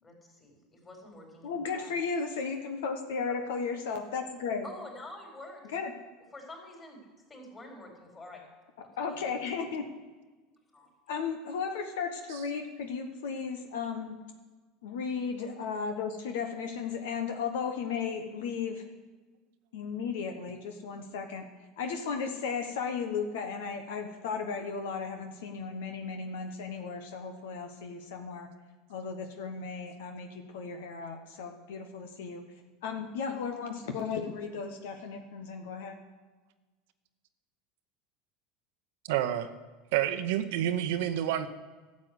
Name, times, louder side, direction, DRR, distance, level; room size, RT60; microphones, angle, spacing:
voice 1, 0.0-1.9 3.3-3.4 4.6-5.7 6.3-8.4 9.0-9.4 10.7-10.9, left 2 dB, 25° left, 1 dB, 4.6 m, -48 dB
voice 2, 1.4-4.7 5.7-5.9 9.0-9.8 11.1-14.2 14.8-18.8 19.7-21.4 21.8-28.5 28.9-32.4 32.8-36.0, left 5 dB, 75° left, 5 dB, 1.3 m, -35 dB
voice 3, 39.1-39.5 39.9-41.5, right 11 dB, 70° right, 9 dB, 0.9 m, -28 dB
12.5 x 7.4 x 8.0 m, 1.3 s
hypercardioid pair, 85°, 0 cm